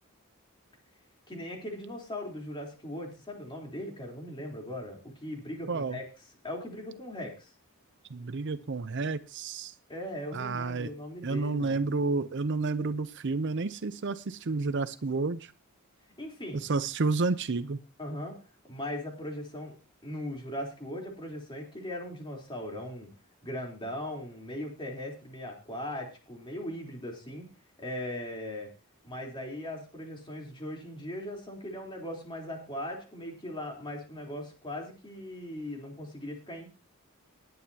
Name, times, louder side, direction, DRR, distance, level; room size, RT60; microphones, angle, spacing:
voice 1, 1.3-6.0 6.4-7.5 9.9-11.8 16.2-16.6 18.0-18.4 18.7-19.8 20.0-23.1 23.4-27.5 27.8-28.7 29.0-36.7, left 1 dB, 25° left, 0 dB, 3.7 m, -39 dB
voice 2, 5.7-6.0 8.1-9.7 10.3-10.9 11.2-15.5 16.5-17.8, right 3 dB, 55° right, 13 dB, 0.6 m, -30 dB
20.0 x 9.4 x 2.9 m, 0.32 s
head